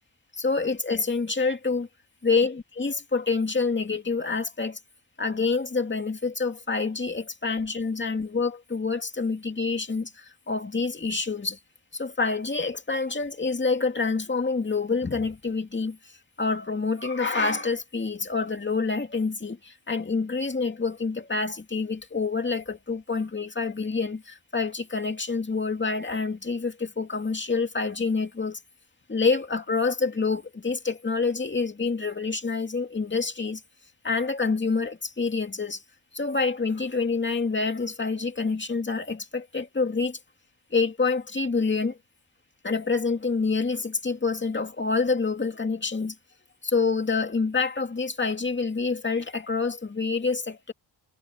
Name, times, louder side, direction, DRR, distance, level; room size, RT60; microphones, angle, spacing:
voice 1, 0.3-1.9 2.2-4.8 5.2-11.6 11.9-16.0 16.4-28.6 29.1-33.6 34.0-35.8 36.1-40.2 40.7-42.0 42.6-46.1 46.6-50.7, left 4 dB, 25° left, 2.3 m, -27 dB
wide cardioid pair, 150°, 45 cm